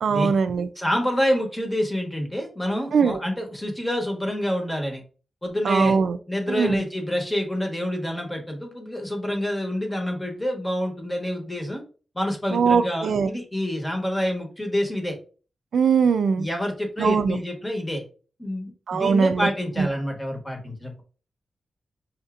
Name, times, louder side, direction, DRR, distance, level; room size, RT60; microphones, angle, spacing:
voice 1, 0.0-0.7 2.9-3.2 5.7-6.2 6.5-6.8 12.5-13.3 15.7-16.5 17.0-17.4 18.9-19.5 19.8-19.9, right 6 dB, 85° right, 0.3 m, -21 dB
voice 2, 0.8-5.0 5.4-6.0 6.3-11.8 12.1-15.2 16.4-18.0 18.4-21.0, equal, 15° left, 1.1 m, -27 dB
5.7 x 2.7 x 2.4 m
wide cardioid pair, 130°, 0 cm